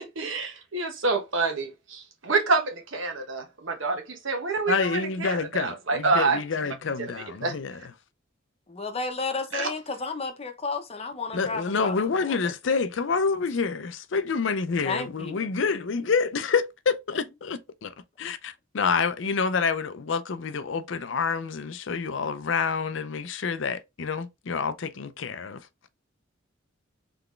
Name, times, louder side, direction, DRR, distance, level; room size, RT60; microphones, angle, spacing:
voice 1, 0.2-6.4 7.0-7.1 7.4-7.5 9.5-9.7, right 3 dB, 75° right, 1.2 m, -27 dB
voice 2, 4.7-7.9 11.3-17.9 18.2-25.6, left 5 dB, 65° left, 0.5 m, -28 dB
voice 3, 8.7-12.5 14.8-15.5, left 4 dB, 30° left, 0.8 m, -33 dB
3.9 x 3.4 x 3.2 m
head